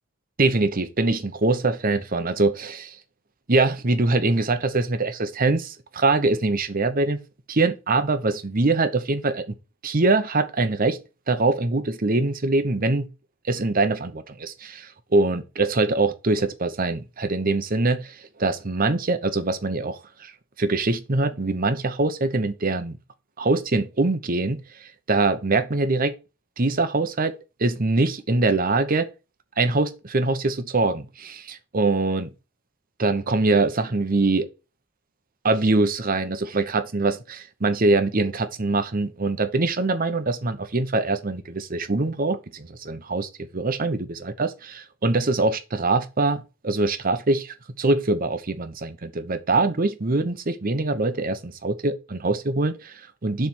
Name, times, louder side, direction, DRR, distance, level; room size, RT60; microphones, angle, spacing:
voice 1, 0.4-3.0 3.5-7.2 7.5-9.5 9.8-11.0 11.3-13.1 13.4-20.3 20.6-23.0 23.4-26.1 26.6-29.1 29.6-32.3 33.0-34.5 35.4-53.5, right 3 dB, 40° right, 0.9 m, -23 dB
7.2 x 3.4 x 6.0 m
head